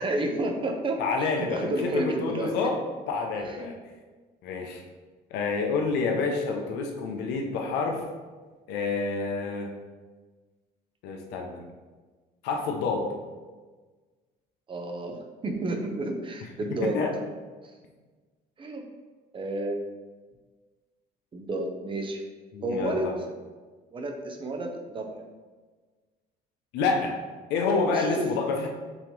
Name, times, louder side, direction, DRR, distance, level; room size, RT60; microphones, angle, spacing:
voice 1, 0.0-2.5 3.4-3.7 14.7-17.1 18.6-18.8 19.3-19.8 21.3-22.2 22.6-23.1 23.9-25.2 27.9-28.2, right 2 dB, 30° right, 4 dB, 0.7 m, -31 dB
voice 2, 1.0-2.8 3.1-3.7 4.4-4.8 5.3-8.0 8.7-9.7 11.0-11.6 12.4-13.1 16.8-17.2 22.5-23.1 26.7-27.2 27.5-28.7, left 4 dB, 90° left, 2 dB, 0.6 m, -28 dB
5.5 x 2.9 x 3.1 m, 1.4 s
cardioid pair, 110°, 17 cm